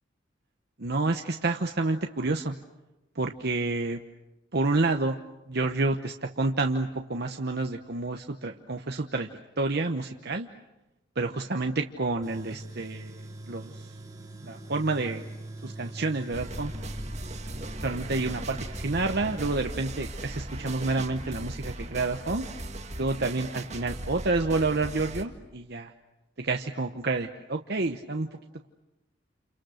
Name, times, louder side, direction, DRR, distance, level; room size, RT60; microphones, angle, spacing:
voice 1, 0.8-2.5 3.1-4.0 4.5-5.2 5.5-9.3 9.6-10.5 11.2-13.9 14.4-15.2 15.6-16.7 17.8-22.5 23.0-25.9 26.4-28.3, right 3 dB, 60° right, 4 dB, 1.0 m, -29 dB
Tools, 12.2-19.6, right 1 dB, 20° right, 3.7 m, -42 dB
sound 1, 16.3-25.2, right 1 dB, 35° right, 1.9 m, -38 dB
29.5 x 28.5 x 6.5 m, 1.0 s
head